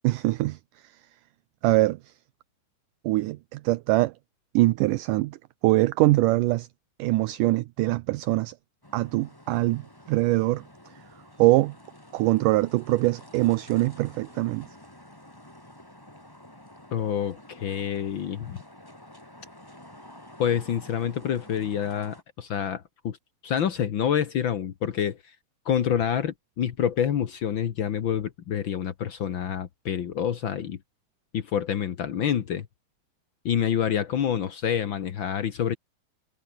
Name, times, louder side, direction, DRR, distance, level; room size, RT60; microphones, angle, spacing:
voice 1, 0.0-1.0 1.6-2.1 3.0-4.1 4.5-5.4 5.6-6.7 7.0-8.6 8.9-10.6 11.4-11.8 12.1-14.7, right 19 dB, 80° right, 2.0 m, -23 dB
sound 1, 8.8-22.2, left 1 dB, 5° left, 3.4 m, -50 dB
voice 2, 16.9-18.6 20.4-23.2 23.4-25.3 25.6-30.8 31.3-32.7 33.4-35.7, left 9 dB, 80° left, 1.1 m, -27 dB
omnidirectional pair, 4.2 m